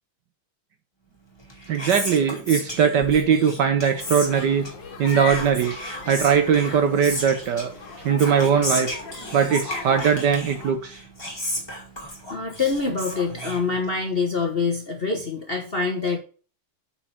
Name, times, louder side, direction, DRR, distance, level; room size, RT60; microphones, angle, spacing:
Whispering, 1.3-14.2, equal, 10° left, 2.0 m, -35 dB
voice 1, 1.7-4.7 5.0-7.7 8.0-8.9 9.3-11.0, right 7 dB, 65° right, 7 dB, 1.2 m, -20 dB
sound 1, 4.0-10.7, left 5 dB, 60° left, 1.9 m, -38 dB
voice 2, 12.3-16.2, left 4 dB, 35° left, 2 dB, 1.0 m, -25 dB
8.6 x 4.4 x 5.8 m, 0.39 s
omnidirectional pair, 2.4 m